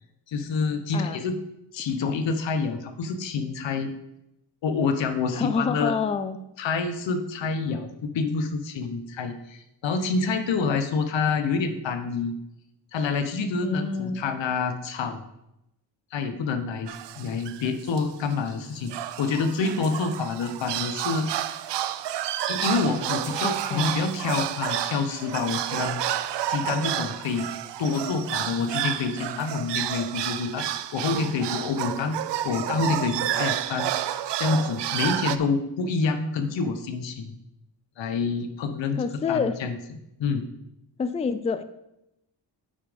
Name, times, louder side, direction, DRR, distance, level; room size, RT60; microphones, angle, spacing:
voice 1, 0.3-1.4 1.7-3.9 4.6-5.9 6.6-12.3 12.9-15.2 16.1-18.9 19.2-21.3 22.5-26.0 26.5-27.5 27.8-30.7 30.9-32.2 32.4-33.9 34.4-37.4 38.0-39.0 39.3-39.8 40.2-40.5, left 4 dB, 90° left, 8 dB, 1.1 m, -27 dB
voice 2, 5.3-6.4 13.6-14.3 23.4-23.9 38.9-39.6 41.0-41.6, left 5 dB, 15° left, 11 dB, 0.3 m, -28 dB
sound 1, 16.9-17.7 18.0-18.1 18.3-18.5 18.9-35.4, right 12 dB, 70° right, 0.6 m, -30 dB
sound 2, 22.8-24.0 24.3-24.8 25.2-26.4 26.9-27.2 27.8-28.1, equal, 10° right, 2.8 m, -44 dB
8.7 x 5.6 x 5.2 m, 0.85 s
wide cardioid pair, 155°, 43 cm